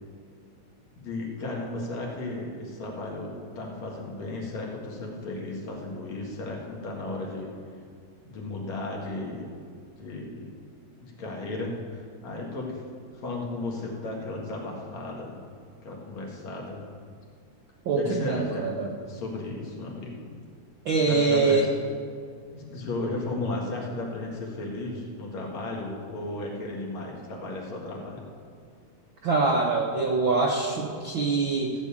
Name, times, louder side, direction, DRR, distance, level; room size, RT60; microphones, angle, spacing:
voice 1, 1.0-7.5 8.2-9.5 10.0-10.5 11.0-12.8 13.1-15.4 15.8-16.8 18.0-18.7 19.0-20.2 21.1-21.6 22.5-28.2, left 2 dB, 65° left, -2 dB, 3.1 m, -35 dB
voice 2, 17.8-18.9 20.8-21.7 29.2-31.7, right 3 dB, 70° right, 0 dB, 1.2 m, -24 dB
15.0 x 5.4 x 8.5 m, 2.3 s
omnidirectional pair, 3.5 m